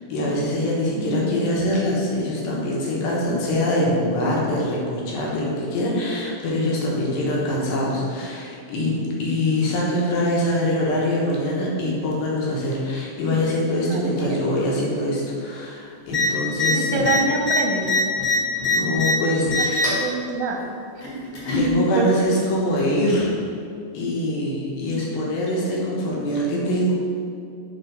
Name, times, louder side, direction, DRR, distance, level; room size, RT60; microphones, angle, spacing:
voice 1, 0.1-17.1 18.6-19.9 21.5-23.3 23.9-26.9, left 1 dB, 90° left, -4 dB, 3.0 m, -24 dB
voice 2, 1.0-1.3 13.9-14.4 16.7-17.9 19.8-20.6 22.0-22.4, right 3 dB, 75° right, 0 dB, 1.9 m, -26 dB
sound 1, 16.1-16.3 16.5-16.7 17.0-19.1 19.5-20.0 21.0-21.7 22.7-22.8, left 3 dB, 50° left, 2.0 m, -22 dB
6.7 x 3.7 x 5.2 m, 2.4 s
omnidirectional pair, 4.1 m